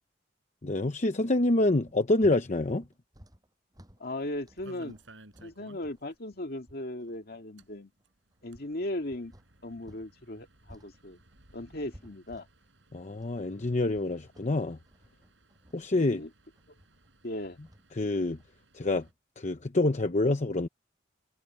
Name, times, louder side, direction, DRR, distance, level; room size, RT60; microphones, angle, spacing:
voice 1, 0.6-2.8 12.9-14.8 15.7-16.2 18.0-18.4 18.7-19.0 19.4-20.7, left 2 dB, 40° left, 0.9 m, -27 dB
sound 1, 1.9-10.1 10.4-19.1, equal, 20° right, 6.7 m, -56 dB
voice 2, 4.0-4.9 5.4-7.9 8.4-9.3 9.6-11.2 11.5-12.5 15.9-16.3 16.7-16.8 17.2-17.6, left 1 dB, 55° left, 2.2 m, -37 dB
sound 2, 4.2-6.2 6.4-6.5 6.8-6.9 7.4-19.1, right 1 dB, 80° right, 7.0 m, -58 dB
head